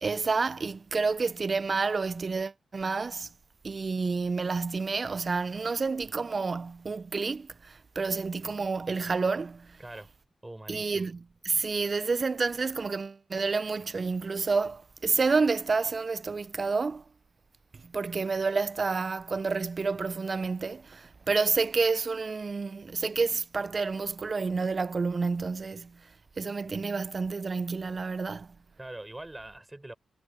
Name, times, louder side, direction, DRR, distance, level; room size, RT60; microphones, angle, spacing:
voice 1, 0.0-3.3 3.6-9.7 10.7-11.2 11.4-17.0 17.9-25.9 26.4-28.5, right 4 dB, 45° right, 0.6 m, -29 dB
voice 2, 9.8-10.1 10.4-11.1 28.8-29.9, right 1 dB, 20° right, 6.3 m, -43 dB
supercardioid pair, 50°, 0 cm